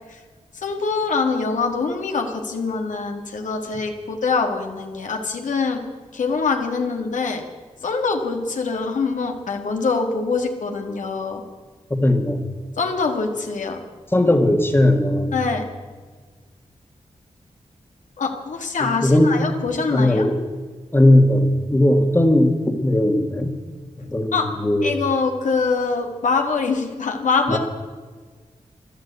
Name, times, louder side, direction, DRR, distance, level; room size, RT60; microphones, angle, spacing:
voice 1, 0.5-5.8 6.1-7.4 7.8-11.4 12.8-13.8 15.3-15.6 18.2-20.3 24.0-24.5 24.8-27.6, left 4 dB, 85° left, 3 dB, 1.9 m, -24 dB
voice 2, 11.9-12.5 14.1-15.4 18.8-19.4 19.9-20.4 20.9-23.6 24.1-25.0 27.5-27.6, left 1 dB, 20° left, 5 dB, 1.7 m, -18 dB
13.5 x 12.0 x 8.2 m, 1.5 s
wide cardioid pair, 80°, 13 cm